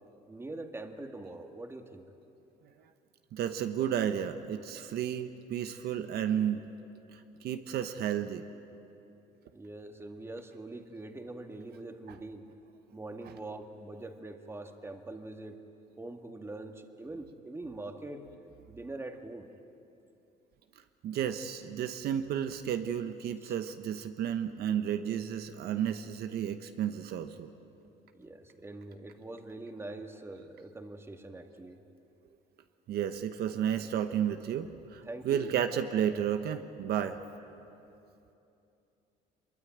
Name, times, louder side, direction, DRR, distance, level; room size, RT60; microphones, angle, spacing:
voice 1, 0.3-2.1 9.5-12.5 12.9-15.6 16.0-18.3 18.7-19.5 23.4-23.5 28.1-31.8 32.9-33.0 35.0-35.7 37.1-37.2, right 2 dB, 15° right, 5 dB, 1.9 m, -43 dB
voice 2, 3.3-6.7 7.1-8.4 12.1-12.2 13.2-13.4 21.0-27.5 32.9-37.2, right 9 dB, 70° right, 8 dB, 1.1 m, -32 dB
24.0 x 22.5 x 8.8 m, 2.8 s
cardioid pair, 110°, 17 cm